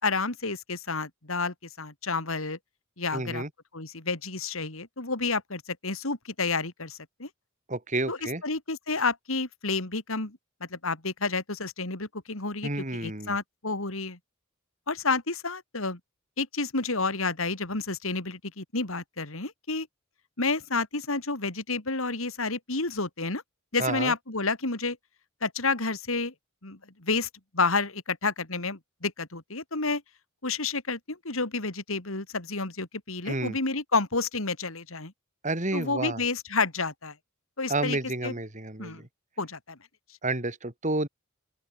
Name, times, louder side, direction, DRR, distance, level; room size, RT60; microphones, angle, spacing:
voice 1, 0.0-2.6 3.0-3.4 3.7-7.3 8.1-14.2 14.9-16.0 16.4-19.9 20.4-23.4 23.7-25.0 25.4-26.3 26.6-30.0 30.4-35.1 35.7-37.1 37.6-38.0 38.2-38.3 38.8-39.0 39.4-39.8, left 3 dB, 70° left, 3.5 m, -30 dB
voice 2, 3.1-3.5 7.7-8.4 12.6-13.3 23.8-24.1 33.3-33.6 35.4-36.2 37.7-39.1 40.2-41.1, right 2 dB, 35° right, 3.6 m, -30 dB
open air
head